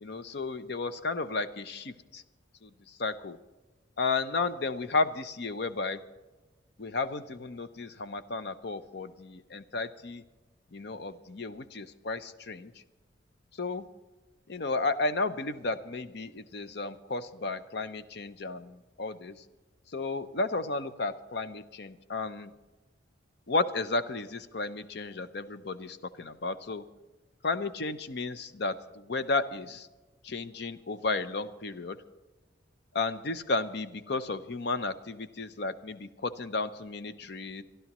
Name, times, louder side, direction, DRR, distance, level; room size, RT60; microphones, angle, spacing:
voice 1, 0.0-2.2 2.6-2.7 3.0-3.4 4.0-6.0 6.8-10.2 10.7-12.7 13.6-13.9 14.5-19.4 19.9-22.5 23.5-26.8 27.4-29.9 30.2-32.0 32.9-37.6, left 3 dB, 55° left, 12 dB, 0.6 m, -33 dB
28.0 x 11.5 x 3.0 m, 1.2 s
head